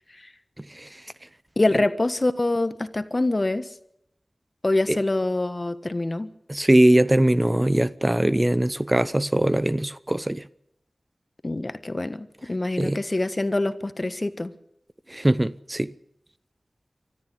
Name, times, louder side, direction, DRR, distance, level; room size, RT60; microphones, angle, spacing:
voice 1, 1.6-3.7 4.6-6.3 11.4-14.5, left 2 dB, 40° left, 1.5 m, -25 dB
voice 2, 6.5-10.4 12.8-13.0 15.1-15.9, right 1 dB, 20° right, 0.8 m, -21 dB
24.5 x 13.5 x 8.2 m
wide cardioid pair, 45°, 0 cm